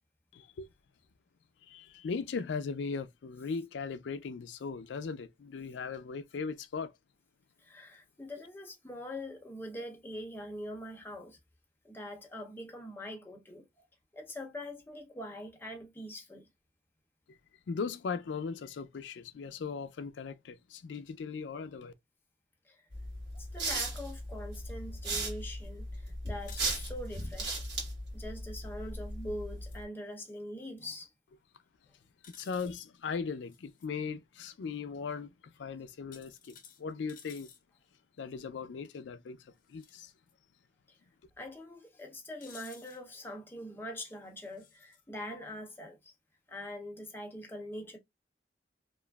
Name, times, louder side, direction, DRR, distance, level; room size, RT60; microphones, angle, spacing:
voice 1, 0.3-0.7 1.7-6.9 17.7-21.9 32.3-37.5 38.2-40.1, left 5 dB, 85° left, 0.4 m, -38 dB
voice 2, 7.6-11.4 11.8-13.8 14.1-16.5 22.6-22.8 23.3-27.6 28.1-31.1 40.9-41.0 41.4-46.1 46.5-48.0, left 1 dB, 10° left, 0.6 m, -43 dB
sound 1, 22.9-29.8, right 2 dB, 75° right, 1.4 m, -37 dB
sound 2, 26.4-26.9 29.5-29.8 32.2-32.8 33.5-33.9 36.1-37.6 39.6-39.9 40.3-40.4 42.4-43.0 44.3-45.0, left 7 dB, 50° left, 0.7 m, -54 dB
2.9 x 2.4 x 2.2 m
head